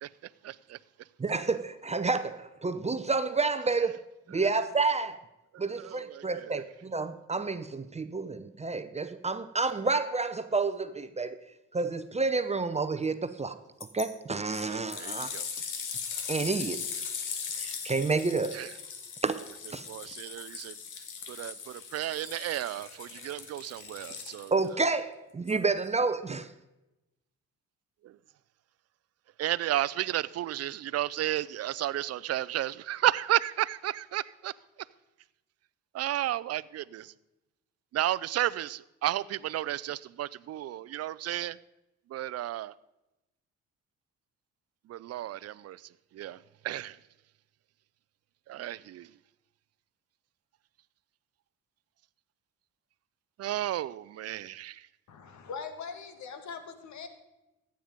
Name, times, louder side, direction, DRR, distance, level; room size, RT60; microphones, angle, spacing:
voice 1, 0.4-0.8 5.8-6.6 14.7-15.5 18.5-18.7 19.9-20.7 21.3-24.5 28.0-28.1 29.4-34.5 35.9-37.1 37.9-41.6 42.1-42.7 44.9-45.8 46.1-46.4 46.6-47.0 48.5-49.1 53.4-54.8, right 13 dB, 55° right, 0.5 m, -32 dB
voice 2, 1.2-4.0 4.3-5.2 5.6-11.4 11.7-13.6 13.9-15.3 16.3-16.8 17.6-18.6 19.2-19.4 19.7-20.1 24.5-26.5, right 4 dB, 20° right, 0.7 m, -30 dB
sound 1, 13.8-14.1 14.5-24.7 25.5-25.6, left 6 dB, 85° left, 1.9 m, -39 dB
voice 3, 55.1-57.1, left 5 dB, 70° left, 1.8 m, -41 dB
14.5 x 9.0 x 5.2 m
cardioid pair, 90°, 30 cm